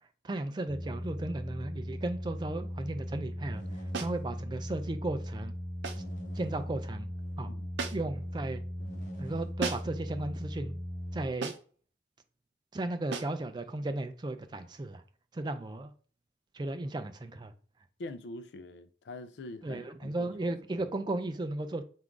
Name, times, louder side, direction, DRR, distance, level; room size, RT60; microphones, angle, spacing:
voice 1, 0.2-3.6 4.0-5.5 6.4-7.1 7.4-7.5 7.9-8.6 9.2-10.8 11.1-11.5 12.7-15.0 15.3-15.9 16.5-17.5 19.6-21.8, right 2 dB, 25° right, 0.3 m, -35 dB
sound 1, 0.7-11.3, equal, 45° left, 0.7 m, -38 dB
sound 2, 3.9-4.2 5.8-6.1 7.8-8.2 9.6-10.0 11.4-11.8 13.1-13.4, right 4 dB, 90° right, 0.5 m, -37 dB
voice 2, 18.0-20.9, left 2 dB, 80° left, 0.4 m, -45 dB
3.7 x 2.5 x 4.4 m
head